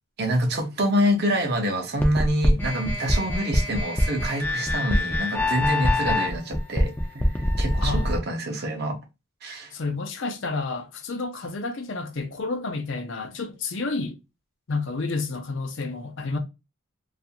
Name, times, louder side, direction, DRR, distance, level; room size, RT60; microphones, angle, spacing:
voice 1, 0.2-7.3 7.6-9.0 9.4-9.7, equal, 50° right, 0.6 m, -26 dB
sound 1, 2.0-8.2, left 1 dB, 10° left, 0.4 m, -24 dB
voice 2, 7.8-8.1 9.7-14.2 14.7-16.4, left 3 dB, 60° left, 0.5 m, -30 dB
2.4 x 2.4 x 2.7 m
head